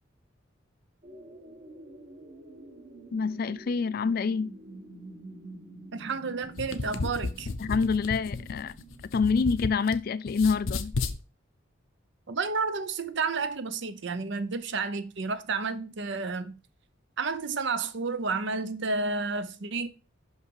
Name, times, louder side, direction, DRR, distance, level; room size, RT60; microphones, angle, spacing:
sound 1, 1.0-9.6, right 2 dB, 45° right, 1.5 m, -48 dB
voice 1, 3.1-4.5 7.6-8.7 9.1-11.0, left 5 dB, 45° left, 0.3 m, -26 dB
voice 2, 5.9-7.5 12.3-16.6 17.2-19.9, right 4 dB, 60° right, 0.7 m, -31 dB
sound 2, 6.4-10.0 10.3-11.2, left 3 dB, 80° left, 0.7 m, -33 dB
5.9 x 5.6 x 4.7 m
head